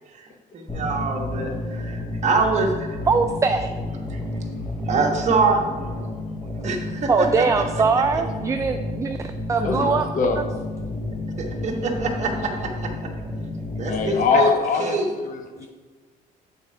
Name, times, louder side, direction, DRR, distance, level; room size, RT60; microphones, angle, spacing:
voice 1, 0.5-3.0 4.1-4.2 4.9-5.6 6.6-7.4 7.9-8.0 9.6-9.7 11.4-12.9 13.8-14.5 14.8-15.1, right 4 dB, 45° right, 2 dB, 1.3 m, -24 dB
sound 1, 0.7-14.2, left 2 dB, 10° left, 0.8 m, -31 dB
voice 2, 3.1-3.7 7.1-9.2 9.5-10.0 10.4-10.5, right 4 dB, 20° right, 6 dB, 0.3 m, -21 dB
voice 3, 9.6-10.4 13.8-15.7, left 4 dB, 50° left, 6 dB, 0.9 m, -23 dB
7.9 x 4.3 x 4.9 m, 1.4 s
cardioid pair, 110°, 17 cm